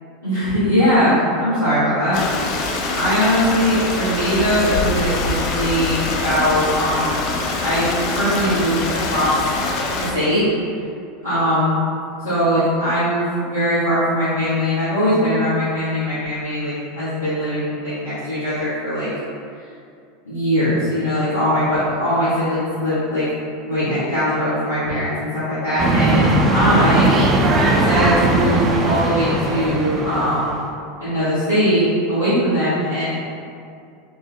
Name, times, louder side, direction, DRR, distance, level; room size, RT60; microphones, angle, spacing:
voice 1, 0.2-2.2 2.9-7.2 7.6-9.5 10.0-10.5 11.2-11.8 12.2-19.1 20.2-23.3 23.6-27.1 27.7-30.6 31.0-33.2, equal, 85° left, -16 dB, 1.1 m, -20 dB
Stream, 2.1-10.1, left 3 dB, 55° left, 0.4 m, -24 dB
sound 1, 25.8-30.6, right 2 dB, 30° right, 0.4 m, -18 dB
3.3 x 2.1 x 3.7 m, 2.4 s
figure-of-eight pair, 80°, 0 cm